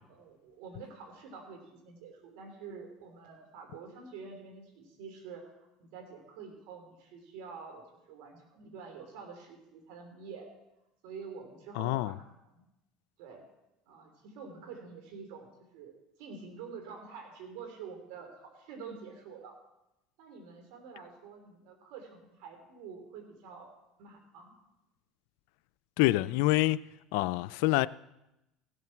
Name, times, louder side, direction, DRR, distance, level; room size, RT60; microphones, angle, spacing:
voice 1, 0.1-10.5 11.0-12.2 12.4-12.6 13.2-13.4 13.9-19.6 20.2-23.7 24.0-24.5, right 5 dB, 75° right, 3.5 m, -47 dB
voice 2, 11.8-12.1 26.0-26.8 27.1-27.9, left 18 dB, 80° left, 0.4 m, -26 dB
16.0 x 7.6 x 6.0 m
supercardioid pair, 110°, 0 cm